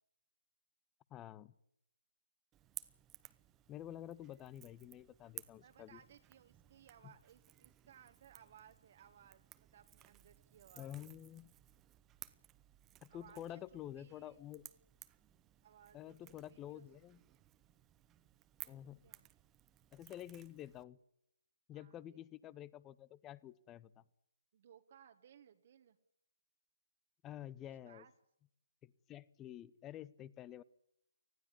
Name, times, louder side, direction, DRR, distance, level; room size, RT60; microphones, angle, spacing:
voice 1, 1.1-1.6 3.7-6.0 7.0-7.1 10.7-11.5 13.0-14.6 15.9-17.2 18.7-19.0 19.9-21.0 21.7-24.0 27.2-28.0 28.8-30.6, left 12 dB, 20° left, 22 dB, 0.7 m, -49 dB
Crackle / Crack, 2.5-20.8, right 13 dB, 15° right, 0.8 m, -58 dB
voice 2, 5.6-10.9 13.1-13.6 14.0-14.4 15.6-16.9 18.6-19.3 21.7-22.2 24.5-26.0 27.6-28.1, right 9 dB, 50° right, 6 dB, 1.4 m, -63 dB
20.0 x 15.0 x 9.8 m, 0.78 s
hypercardioid pair, 145°, 0 cm